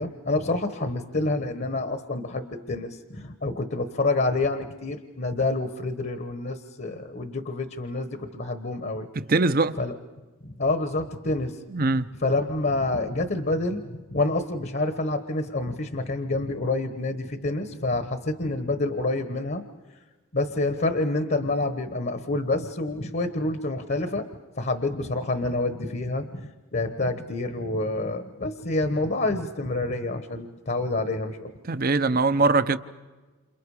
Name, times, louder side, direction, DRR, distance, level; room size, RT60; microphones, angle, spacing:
voice 1, 0.0-9.1 9.8-9.9 10.4-11.6 12.2-19.6 20.3-24.3 24.6-31.5, left 2 dB, 45° left, 1.2 m, -28 dB
voice 2, 9.2-9.8 11.7-12.1 31.7-32.8, right 3 dB, 40° right, 0.8 m, -22 dB
29.5 x 28.0 x 4.9 m
head